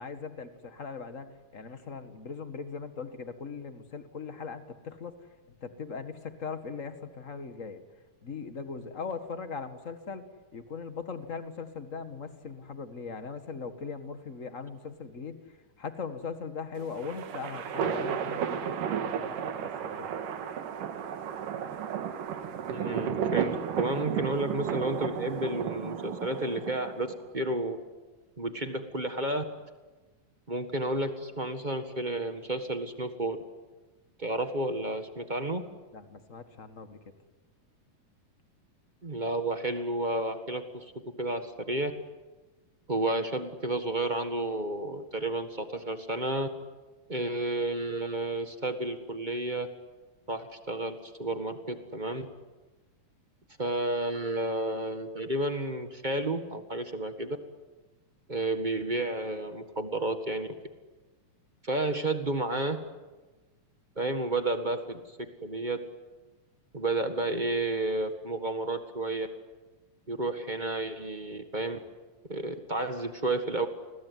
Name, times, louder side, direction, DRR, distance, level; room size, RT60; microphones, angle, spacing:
voice 1, 0.0-5.3 5.6-7.8 8.2-10.2 10.5-20.1 35.9-37.0, left 5 dB, 35° left, 9 dB, 1.5 m, -40 dB
sound 1, 16.8-27.2, right 8 dB, 90° right, 3.3 m, -33 dB
voice 2, 22.7-27.8 28.4-29.4 30.5-33.4 34.2-35.6 39.0-40.9 41.2-41.9 42.9-46.5 47.1-49.7 50.3-52.3 53.6-57.4 58.3-60.5 61.6-62.8 63.9-65.8 66.7-69.3 70.1-71.8 72.3-73.7, right 2 dB, 25° right, 7 dB, 1.0 m, -31 dB
29.5 x 21.5 x 9.5 m, 1.2 s
omnidirectional pair, 3.6 m